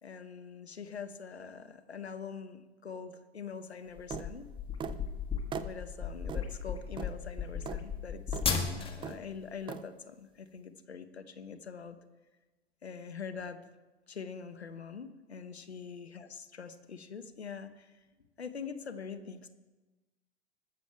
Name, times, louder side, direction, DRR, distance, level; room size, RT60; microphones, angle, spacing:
voice 1, 0.0-4.5 5.6-12.0 12.8-13.6 14.1-17.9 18.4-19.5, left 6 dB, 85° left, 9 dB, 1.1 m, -44 dB
sound 1, 4.0-9.1, left 6 dB, 15° left, 1.7 m, -35 dB
sound 2, 4.1-4.3 4.8-5.0 5.5-5.7 6.3-6.4 7.0-7.1 7.7-7.8 8.3-8.5 9.0-9.2 9.7-9.8, right 7 dB, 15° right, 0.5 m, -39 dB
20.5 x 7.2 x 4.6 m, 1.2 s
figure-of-eight pair, 95°, 31 cm